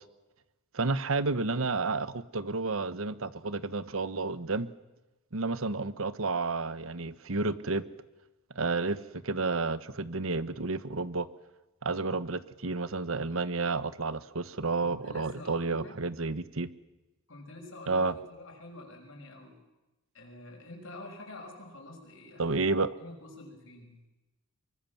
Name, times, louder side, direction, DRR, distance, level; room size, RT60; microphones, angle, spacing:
voice 1, 0.7-4.7 5.3-7.8 8.5-9.0 9.2-11.3 11.8-16.7 17.9-18.1 22.4-22.9, right 3 dB, 75° right, 14 dB, 1.2 m, -31 dB
voice 2, 14.8-16.0 17.3-19.6 20.1-22.6 23.0-24.0, left 2 dB, 65° left, 3 dB, 6.2 m, -47 dB
24.5 x 24.0 x 7.3 m, 1.0 s
head